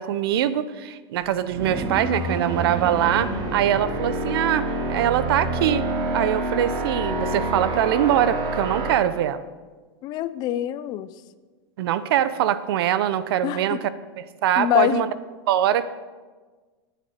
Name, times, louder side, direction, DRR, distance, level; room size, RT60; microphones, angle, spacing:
voice 1, 0.0-5.8 6.1-9.4 11.8-13.8 14.2-15.1 15.5-15.9, right 11 dB, 70° right, 14 dB, 0.7 m, -23 dB
sound 1, 1.2-8.9, right 2 dB, 40° right, 1.9 m, -27 dB
voice 2, 10.0-11.1 13.4-13.8 14.6-15.1, left 12 dB, 30° left, 15 dB, 0.4 m, -24 dB
13.5 x 9.3 x 4.3 m, 1.4 s
supercardioid pair, 150°, 13 cm